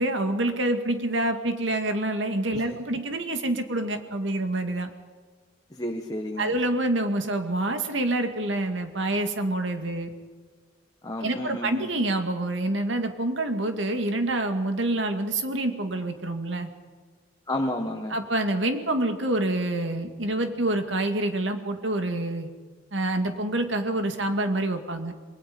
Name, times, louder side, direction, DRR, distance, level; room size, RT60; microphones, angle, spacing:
voice 1, 0.0-4.9 6.4-10.1 11.2-16.7 18.1-22.5 22.9-25.1, right 1 dB, 75° right, 6 dB, 2.3 m, -27 dB
voice 2, 5.7-6.5 11.0-11.9 17.5-18.2, left 1 dB, 20° left, 3 dB, 1.4 m, -31 dB
27.5 x 20.5 x 5.4 m, 1.5 s
head